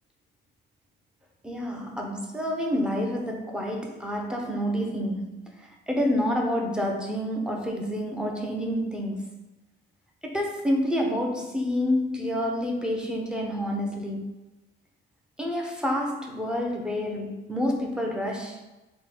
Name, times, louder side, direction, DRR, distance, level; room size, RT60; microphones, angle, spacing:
voice 1, 1.4-5.4 5.9-9.4 10.2-14.3 15.4-18.6, equal, 5° right, 0.7 m, -28 dB
3.8 x 2.2 x 4.2 m
cardioid pair, 90°, 20 cm